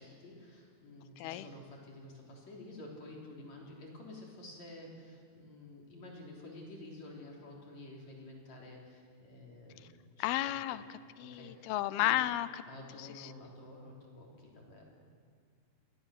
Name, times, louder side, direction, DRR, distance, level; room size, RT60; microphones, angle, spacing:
voice 1, 0.0-9.9 10.2-10.5 11.2-12.2 12.7-14.9, left 2 dB, 45° left, -2 dB, 4.7 m, -50 dB
voice 2, 10.2-10.8 11.2-12.6 13.0-13.3, left 14 dB, 85° left, 15 dB, 2.7 m, -33 dB
27.5 x 20.5 x 6.6 m, 2.1 s
omnidirectional pair, 4.4 m